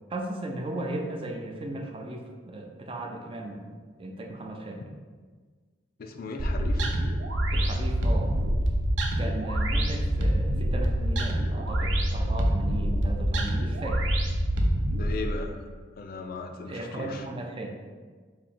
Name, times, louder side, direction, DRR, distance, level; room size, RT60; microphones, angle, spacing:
voice 1, 0.1-4.8 7.5-8.4 9.2-14.1 16.7-17.8, right 1 dB, 30° right, 2 dB, 0.4 m, -36 dB
voice 2, 6.0-6.9 14.9-15.7 16.0-17.2, left 3 dB, 55° left, 4 dB, 0.4 m, -37 dB
sound 1, 6.4-15.1, right 1 dB, 80° right, 0.6 m, -26 dB
4.2 x 2.7 x 4.3 m, 1.5 s
head